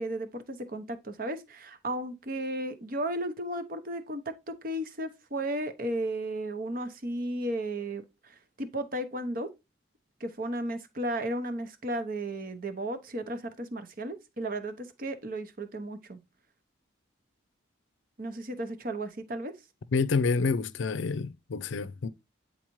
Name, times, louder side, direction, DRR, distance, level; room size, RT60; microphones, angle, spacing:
voice 1, 0.0-9.5 10.2-16.2 18.2-19.5, right 1 dB, 45° right, 0.9 m, -34 dB
voice 2, 19.9-22.1, left 4 dB, 70° left, 0.5 m, -28 dB
9.2 x 4.0 x 3.0 m
head